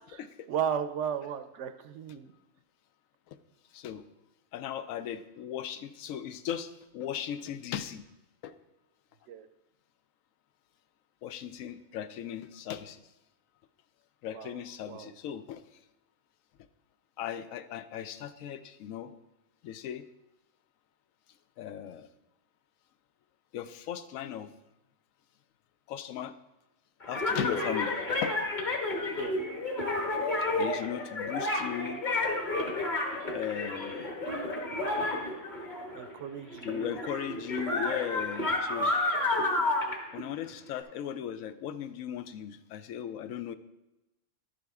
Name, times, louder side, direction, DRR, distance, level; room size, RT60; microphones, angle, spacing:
voice 1, 0.5-2.3 9.3-9.4 14.3-14.5 14.9-15.1 29.2-29.3 35.9-36.8, right 8 dB, 70° right, 10 dB, 0.9 m, -34 dB
voice 2, 3.7-4.0 4.5-8.1 8.4-8.5 11.2-13.1 14.2-15.8 17.2-19.1 19.6-20.0 21.6-22.1 23.5-24.5 25.9-26.4 27.1-28.4 29.6-32.0 33.3-34.2 36.6-38.9 40.1-43.5, left 9 dB, 85° left, 12 dB, 1.0 m, -37 dB
sound 1, 27.0-36.2 36.5-40.8, left 2 dB, 35° left, 1.5 m, -31 dB
11.5 x 7.4 x 3.5 m, 0.99 s
omnidirectional pair, 1.4 m